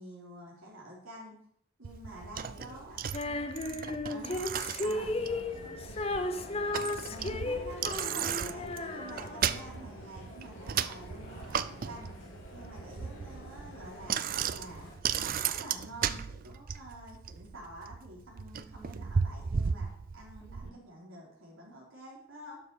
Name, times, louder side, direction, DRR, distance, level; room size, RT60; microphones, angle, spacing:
voice 1, 0.0-1.4 1.8-3.0 4.1-4.4 4.8-5.1 7.1-12.1 12.5-14.2 14.5-22.6, right 1 dB, 80° right, -3 dB, 4.0 m, -48 dB
Bicycle, 1.8-20.7, right 7 dB, 45° right, 0.4 m, -36 dB
voice 2, 2.1-3.4 3.7-4.0 5.1-6.5 13.0-13.2 18.7-19.1 20.4-20.8, right 2 dB, 10° left, -7 dB, 4.1 m, -55 dB
Female singing, 3.1-9.6, left 2 dB, 30° left, 0.6 m, -35 dB
sound 1, 4.8-15.0, left 1 dB, 65° left, 2.9 m, -49 dB
11.5 x 6.7 x 4.8 m, 0.67 s
head